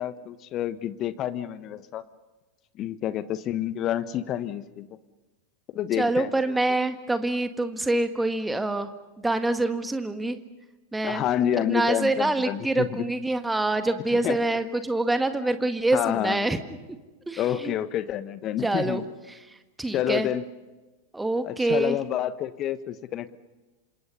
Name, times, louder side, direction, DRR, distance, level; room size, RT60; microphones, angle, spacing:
voice 1, 0.0-2.0 2.8-4.9 5.7-6.3 11.0-13.0 14.1-14.4 15.9-16.4 17.4-19.0 19.9-20.4 21.4-23.4, left 11 dB, 35° left, 14 dB, 1.2 m, -28 dB
voice 2, 6.0-8.9 9.2-10.4 10.9-11.2 11.7-16.6 17.3-17.7 18.6-19.0 19.3-19.4 19.8-20.3 21.1-22.0, right 2 dB, 5° right, 9 dB, 1.8 m, -25 dB
28.0 x 26.5 x 5.5 m, 1.2 s
figure-of-eight pair, 90°, 0 cm